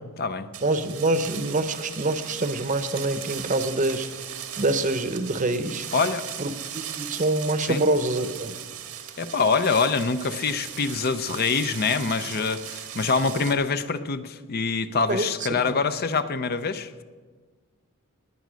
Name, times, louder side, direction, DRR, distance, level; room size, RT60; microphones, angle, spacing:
sound 1, 0.5-13.5, right 10 dB, 80° right, 1.5 m, -38 dB
voice 1, 0.6-5.9 6.4-6.5 6.9-8.6 15.1-15.8, right 2 dB, 35° right, 10 dB, 0.9 m, -26 dB
voice 2, 5.9-6.3 7.7-7.8 9.2-17.0, left 4 dB, 45° left, 11 dB, 0.6 m, -25 dB
19.5 x 9.4 x 6.3 m, 1.5 s
head